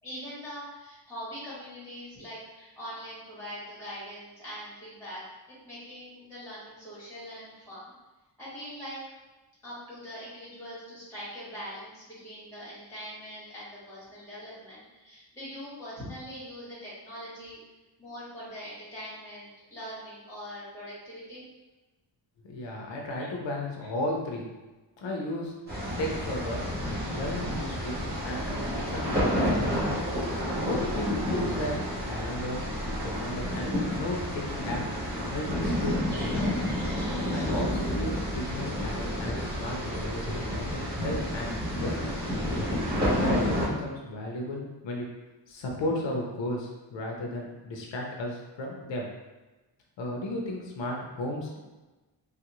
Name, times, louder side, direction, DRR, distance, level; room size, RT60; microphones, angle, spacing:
voice 1, 0.0-5.2 5.6-7.8 8.4-9.0 9.6-17.6 18.0-21.4, equal, 5° left, -11 dB, 1.4 m, -42 dB
voice 2, 22.4-24.6 25.0-26.7 27.1-28.6 28.8-30.0 30.6-32.7 33.0-36.7 37.3-42.2 43.1-45.1 45.5-49.1 50.0-51.5, left 1 dB, 80° left, -1 dB, 0.7 m, -35 dB
sound 1, 25.7-43.7, equal, 20° right, 0.9 m, -30 dB
3.3 x 2.4 x 2.9 m, 1.1 s
wide cardioid pair, 175°, 44 cm